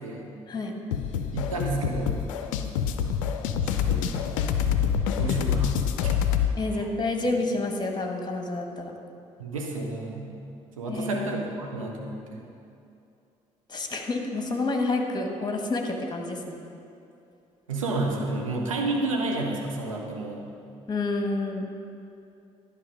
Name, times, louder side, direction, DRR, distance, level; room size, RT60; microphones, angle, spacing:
voice 1, 0.5-0.8 6.6-9.0 10.9-11.3 13.7-16.6 20.9-21.7, left 2 dB, 25° left, 3 dB, 1.3 m, -29 dB
sound 1, 0.9-6.5, left 8 dB, 75° left, 0.4 m, -26 dB
voice 2, 1.3-2.2 3.9-4.1 5.2-6.2 9.4-10.3 10.8-12.5 17.7-20.5, right 2 dB, 85° right, 0 dB, 0.8 m, -30 dB
11.0 x 5.2 x 5.2 m, 2.6 s
figure-of-eight pair, 45°, 17 cm